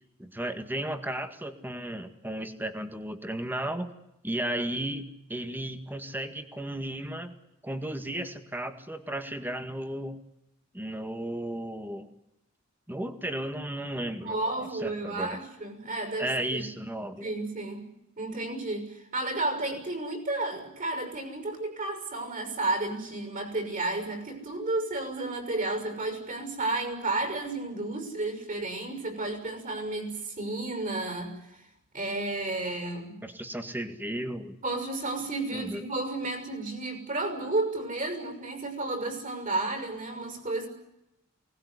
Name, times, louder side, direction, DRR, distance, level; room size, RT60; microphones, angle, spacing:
voice 1, 0.2-3.9 4.2-5.0 5.3-7.4 7.6-10.2 10.7-12.1 12.9-15.4 16.2-17.3 33.2-34.6 35.5-35.8, right 1 dB, 10° right, 1.9 m, -34 dB
voice 2, 14.2-16.6 17.2-31.6 31.9-33.2 34.6-40.7, right 2 dB, 40° right, 6.5 m, -32 dB
24.0 x 19.5 x 9.8 m
head